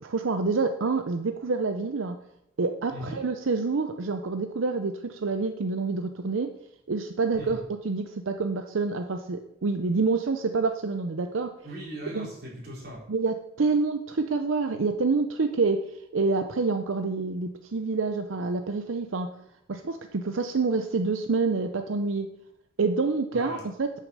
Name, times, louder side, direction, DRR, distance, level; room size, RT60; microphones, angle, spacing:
voice 1, 0.0-2.2 2.6-6.5 6.9-7.6 7.8-11.5 12.1-12.3 13.1-19.3 19.7-22.3 22.8-23.9, right 4 dB, 85° right, 7 dB, 0.6 m, -27 dB
voice 2, 2.9-3.2 7.3-7.6 11.6-13.0 23.3-23.6, equal, 50° right, -4 dB, 4.2 m, -39 dB
8.6 x 6.5 x 6.5 m, 0.79 s
head